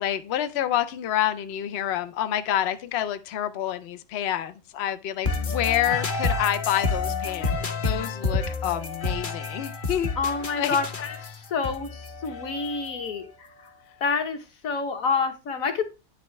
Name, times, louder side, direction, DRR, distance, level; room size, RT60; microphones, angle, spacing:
voice 1, 0.0-10.2 10.6-10.8, left 11 dB, 80° left, 0.5 m, -28 dB
sound 1, 5.2-13.1, left 3 dB, 40° left, 0.8 m, -29 dB
voice 2, 10.2-13.7 14.0-15.9, left 5 dB, 55° left, 1.5 m, -28 dB
9.0 x 5.3 x 3.2 m
omnidirectional pair, 1.9 m